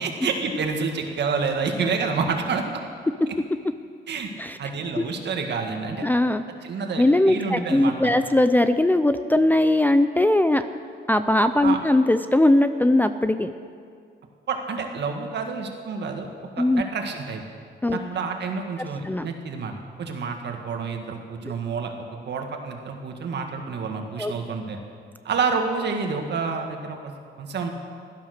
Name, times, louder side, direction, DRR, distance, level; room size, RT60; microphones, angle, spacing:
voice 1, 0.0-2.6 4.1-4.3 4.6-6.1 6.6-8.1 11.6-11.8 14.5-16.3 16.6-17.4 17.9-24.8 25.2-27.1 27.4-27.7, right 5 dB, 65° right, 3 dB, 1.8 m, -28 dB
voice 2, 6.0-6.4 7.0-10.7 11.1-13.5 16.6-16.8 17.8-18.0 19.0-19.3 21.4-21.5 24.2-24.3, left 1 dB, 10° left, 8 dB, 0.4 m, -20 dB
16.0 x 12.5 x 6.6 m, 2.2 s
wide cardioid pair, 155°, 19 cm